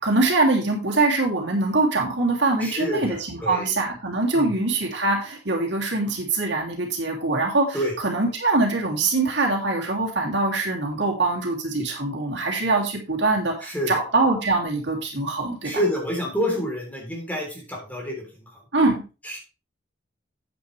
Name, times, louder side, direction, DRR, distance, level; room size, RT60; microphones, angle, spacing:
voice 1, 0.0-15.8 18.7-19.0, right 3 dB, 70° right, 0 dB, 2.8 m, -23 dB
voice 2, 2.6-3.7 4.3-4.5 7.7-7.9 13.6-13.9 15.6-18.6 19.2-19.4, equal, 10° left, -1 dB, 3.5 m, -28 dB
9.7 x 8.8 x 3.3 m, 0.31 s
head